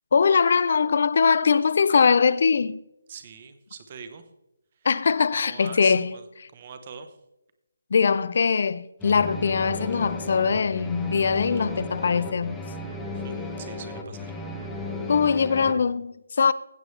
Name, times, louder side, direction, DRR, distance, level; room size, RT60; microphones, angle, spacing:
voice 1, 0.1-2.8 4.8-6.2 7.9-12.6 15.1-16.5, left 5 dB, 45° left, 0.5 m, -21 dB
voice 2, 3.1-4.2 4.8-4.9 5.3-6.3 6.5-7.2 13.1-14.3, right 6 dB, 30° right, 0.9 m, -43 dB
sound 1, 9.0-15.7, left 2 dB, 5° left, 0.8 m, -35 dB
16.0 x 7.0 x 3.3 m
hypercardioid pair, 170°, 0 cm